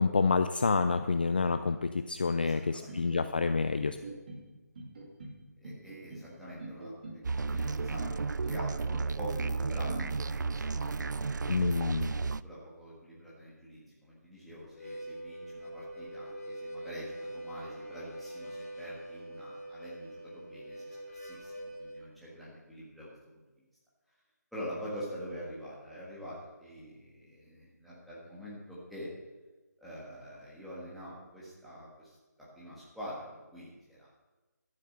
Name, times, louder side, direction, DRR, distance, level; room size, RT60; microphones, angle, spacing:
voice 1, 0.0-4.0 11.5-12.1, left 4 dB, 30° left, 10 dB, 0.3 m, -28 dB
voice 2, 2.4-3.0 5.6-8.2 8.5-11.6 12.2-23.1 24.5-29.1 29.8-34.1, equal, ahead, -9 dB, 1.6 m, -46 dB
sound 1, 2.9-3.5 3.8-4.4 4.7-5.4 5.6-6.3 6.6-7.2 7.5-8.1 8.4-9.1 9.4-10.0, right 2 dB, 30° right, 2.1 m, -44 dB
sound 2, 7.2-12.4, right 4 dB, 85° right, 0.4 m, -33 dB
Harmonica, 14.6-22.0, right 1 dB, 55° left, 3.6 m, -44 dB
12.5 x 6.6 x 6.8 m, 1.2 s
figure-of-eight pair, 170°, 10 cm